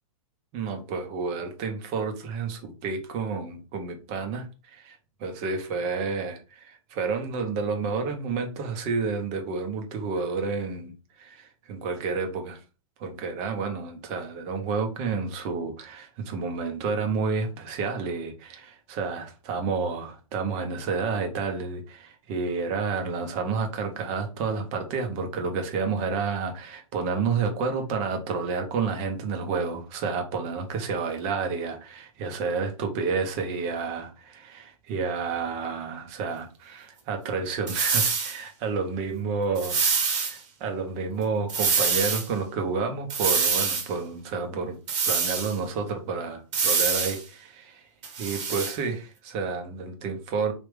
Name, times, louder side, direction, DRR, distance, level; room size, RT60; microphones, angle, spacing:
voice 1, 0.5-10.9 11.2-12.6 13.0-44.8 45.1-47.8 48.2-50.5, right 4 dB, 35° right, 4 dB, 1.0 m, -30 dB
sound 1, 37.7-38.4 39.6-40.3 41.5-42.3 43.1-43.9 44.9-45.5 46.5-47.2 48.0-48.7, right 5 dB, 50° right, 1.4 m, -25 dB
3.4 x 2.9 x 3.3 m, 0.32 s
hypercardioid pair, 130°, 19 cm